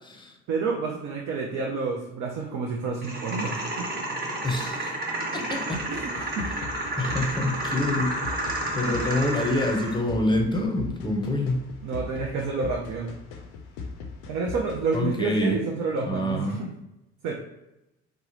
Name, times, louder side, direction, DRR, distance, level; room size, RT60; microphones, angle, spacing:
voice 1, 0.5-3.9 5.9-6.4 11.8-13.1 14.3-16.7 17.2-17.3, right 4 dB, 55° right, -2 dB, 0.6 m, -29 dB
sound 1, 3.0-10.0, right 1 dB, 25° right, 1.1 m, -31 dB
voice 2, 4.4-5.0 5.3-5.8 7.0-8.2 8.7-11.7 14.9-15.6 16.0-16.6, left 1 dB, 15° left, 2 dB, 0.7 m, -26 dB
sound 2, 5.7-15.0, left 4 dB, 75° left, 0.6 m, -40 dB
3.4 x 2.0 x 3.0 m, 0.91 s
hypercardioid pair, 65°, 36 cm